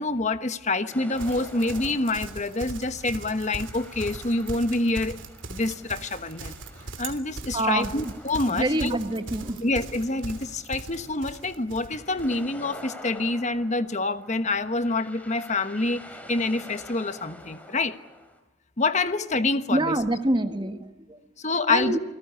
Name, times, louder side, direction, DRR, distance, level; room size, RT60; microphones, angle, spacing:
voice 1, 0.0-5.2 5.5-6.5 7.0-9.0 9.6-18.0 18.8-19.9 21.4-22.0, left 2 dB, 35° left, 10 dB, 1.2 m, -27 dB
sound 1, 0.9-18.4, left 1 dB, 5° left, 3.6 m, -48 dB
Livestock farm animals working animals, 1.1-12.3, right 2 dB, 65° right, 3.1 m, -39 dB
voice 2, 7.5-8.1 8.5-9.6 19.7-21.2 21.7-22.0, right 1 dB, 20° right, 8 dB, 1.6 m, -26 dB
28.5 x 19.0 x 9.7 m, 1.0 s
head